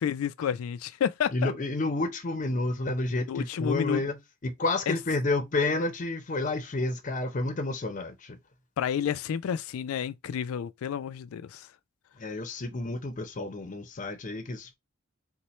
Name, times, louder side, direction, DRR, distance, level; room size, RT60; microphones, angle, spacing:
voice 1, 0.0-1.5 3.3-4.0 4.9-5.0 8.8-11.7, left 8 dB, 90° left, 0.3 m, -30 dB
voice 2, 1.3-8.4 12.2-14.7, left 2 dB, 40° left, 0.6 m, -30 dB
4.2 x 2.1 x 3.1 m
head